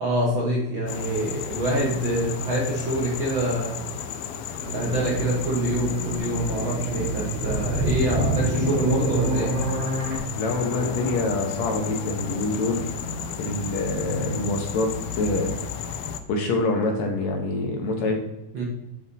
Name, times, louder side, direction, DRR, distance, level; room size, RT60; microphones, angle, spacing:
voice 1, 0.0-3.7 4.7-9.6 18.5-18.6, right 1 dB, 55° right, -4 dB, 1.5 m, -26 dB
sound 1, 0.9-16.2, left 6 dB, 85° left, 1.5 m, -33 dB
sound 2, 4.6-9.7, right 5 dB, 80° right, 2.8 m, -31 dB
sound 3, 7.4-10.2, equal, 20° right, 1.4 m, -26 dB
voice 2, 10.4-12.9 13.4-15.6 15.9-16.0 16.3-18.2, left 2 dB, 70° left, 2 dB, 1.9 m, -26 dB
8.2 x 4.2 x 4.0 m, 0.93 s
omnidirectional pair, 3.7 m